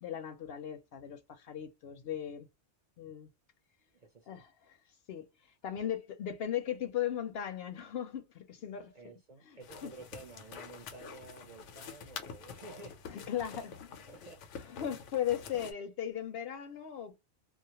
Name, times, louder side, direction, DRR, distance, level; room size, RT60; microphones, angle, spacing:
voice 1, 0.0-2.5 3.0-3.3 4.3-8.9 9.5-9.9 13.1-13.7 14.7-17.2, left 10 dB, 65° left, 0.7 m, -37 dB
voice 2, 3.9-4.4 8.9-13.2 13.5-13.7 14.1-14.7, right 3 dB, 50° right, 0.5 m, -52 dB
sound 1, 9.6-15.7, left 6 dB, 90° left, 0.9 m, -47 dB
2.3 x 2.1 x 2.8 m
omnidirectional pair, 1.2 m